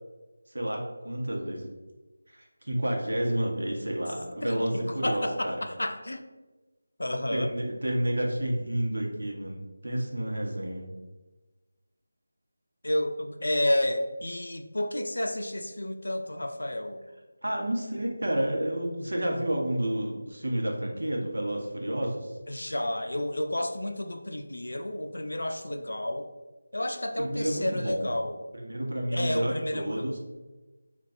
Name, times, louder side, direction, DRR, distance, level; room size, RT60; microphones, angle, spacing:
voice 1, 0.5-1.7 2.3-5.6 7.3-10.9 17.4-22.3 27.2-28.1 28.5-30.2, right 1 dB, 85° right, 0 dB, 0.8 m, -30 dB
voice 2, 5.0-6.3 7.0-7.5 12.8-17.0 22.5-26.3 26.7-28.4 29.1-30.1, left 1 dB, 90° left, 6 dB, 0.4 m, -30 dB
4.0 x 2.2 x 2.5 m, 1.2 s
figure-of-eight pair, 175°, 0 cm